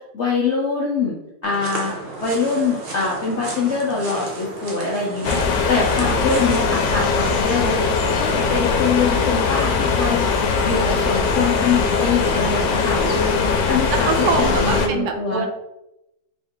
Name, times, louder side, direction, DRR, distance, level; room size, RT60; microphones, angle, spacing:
voice 1, 0.1-1.2 1.4-1.9 2.2-5.4 5.7-7.8 8.2-10.3 10.6-13.3 13.7-15.5, left 4 dB, 65° left, -4 dB, 0.7 m, -23 dB
sound 1, 1.4-7.4, right 2 dB, 55° right, 0.6 m, -34 dB
sound 2, 5.2-14.9, left 5 dB, 85° left, 1.3 m, -20 dB
voice 2, 13.2-13.7 13.9-15.5, right 5 dB, 75° right, 4 dB, 1.2 m, -25 dB
3.7 x 2.7 x 3.6 m, 0.87 s
omnidirectional pair, 1.9 m